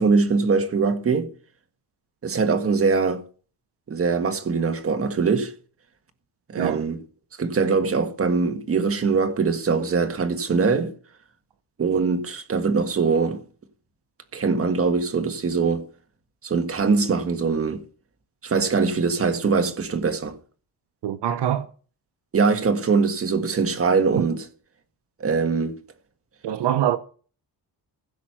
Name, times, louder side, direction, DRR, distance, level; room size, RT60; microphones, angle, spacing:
voice 1, 0.0-1.3 2.2-3.2 3.9-5.5 6.5-7.0 7.4-10.9 11.8-13.4 14.3-15.9 16.4-17.8 18.4-20.4 22.3-24.5 25.2-25.7, right 4 dB, 35° right, 1.7 m, -22 dB
voice 2, 21.0-21.7 24.1-24.2 26.4-27.0, right 11 dB, 80° right, 0.9 m, -24 dB
16.0 x 6.3 x 5.7 m
wide cardioid pair, 170°, 40 cm